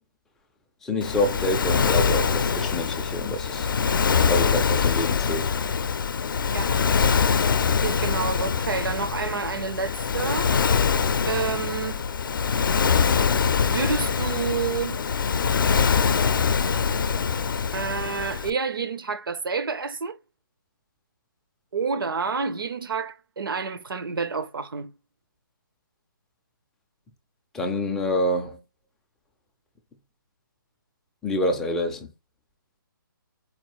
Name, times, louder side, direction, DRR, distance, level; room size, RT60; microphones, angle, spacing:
voice 1, 0.8-3.7 4.3-5.5 27.5-28.6 31.2-32.1, left 1 dB, 5° left, 0.3 m, -27 dB
Waves surf, 1.0-18.5, left 6 dB, 70° left, 0.5 m, -24 dB
voice 2, 7.8-10.5 11.3-12.0 13.6-15.0 17.7-20.2 21.7-24.9, right 5 dB, 80° right, 0.6 m, -29 dB
4.4 x 2.3 x 3.0 m
hypercardioid pair, 160°, 12 cm